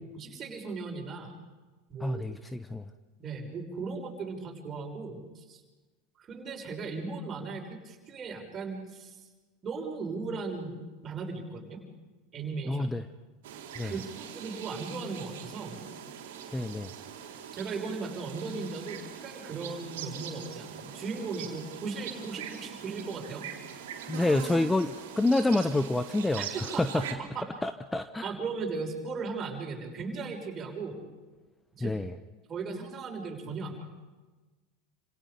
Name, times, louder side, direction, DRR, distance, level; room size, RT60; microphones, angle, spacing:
voice 1, 0.1-1.3 1.9-2.2 3.2-5.6 6.2-9.2 9.6-11.8 12.3-12.9 13.8-15.9 17.5-23.4 26.4-26.8 27.2-27.5 28.2-31.0 31.7-31.9 32.5-34.0, right 4 dB, 30° right, 1 dB, 6.3 m, -37 dB
voice 2, 2.0-2.8 12.7-13.0 13.8-13.9 16.5-16.9 24.1-27.0 27.6-28.3 31.8-32.1, left 2 dB, 10° left, 10 dB, 1.0 m, -28 dB
sound 1, 13.4-27.1, right 8 dB, 65° right, 3.7 m, -42 dB
30.0 x 27.0 x 5.3 m, 1.3 s
figure-of-eight pair, 80°, 0 cm